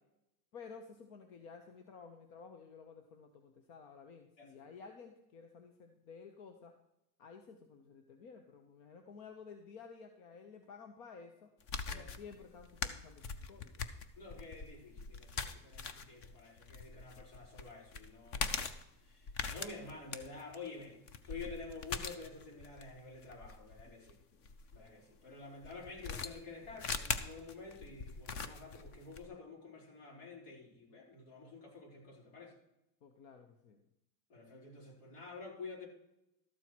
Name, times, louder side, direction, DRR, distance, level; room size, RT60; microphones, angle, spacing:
voice 1, 0.5-6.7 7.2-11.6 11.9-13.8 23.8-24.5 33.0-33.8, left 5 dB, 65° left, 5 dB, 1.2 m, -53 dB
sound 1, 11.6-24.8 25.6-29.3, left 5 dB, 30° left, 0.6 m, -42 dB
voice 2, 11.9-12.2 14.2-21.0 21.2-24.2 24.7-32.6 34.3-35.9, left 3 dB, 85° left, -1 dB, 4.2 m, -50 dB
13.0 x 4.5 x 6.2 m, 0.86 s
supercardioid pair, 150°, 47 cm